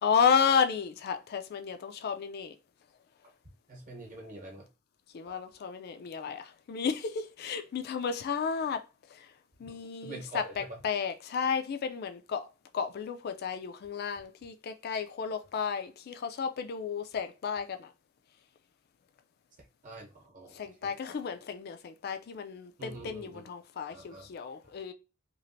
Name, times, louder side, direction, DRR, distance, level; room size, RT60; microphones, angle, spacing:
voice 1, 0.0-2.6 5.1-8.8 9.1-9.3 9.6-12.5 12.7-17.9 20.5-24.9, left 6 dB, 50° left, 0.3 m, -32 dB
voice 2, 3.7-4.7 9.6-10.8 19.8-21.0 22.8-23.4 23.9-24.3, right 2 dB, 40° right, 0.9 m, -45 dB
3.1 x 2.4 x 2.6 m
head